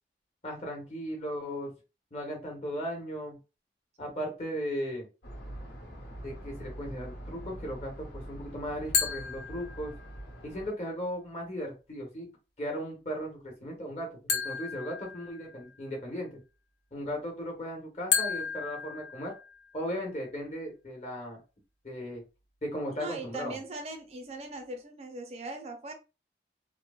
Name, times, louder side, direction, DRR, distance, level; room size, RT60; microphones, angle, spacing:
voice 1, 0.4-1.7 2.1-3.4 4.0-5.0 6.2-10.0 10.4-12.3 12.6-16.4 16.9-19.3 19.7-21.4 21.8-22.2 22.6-23.6, equal, 40° left, 1.0 m, -37 dB
sound 1, 5.2-10.7, right 1 dB, 90° left, 1.1 m, -44 dB
sound 2, 8.9-10.2 14.3-15.8 18.1-19.8, left 6 dB, 75° left, 0.6 m, -33 dB
voice 2, 22.9-25.9, right 2 dB, 35° right, 0.4 m, -40 dB
2.9 x 2.0 x 2.3 m
head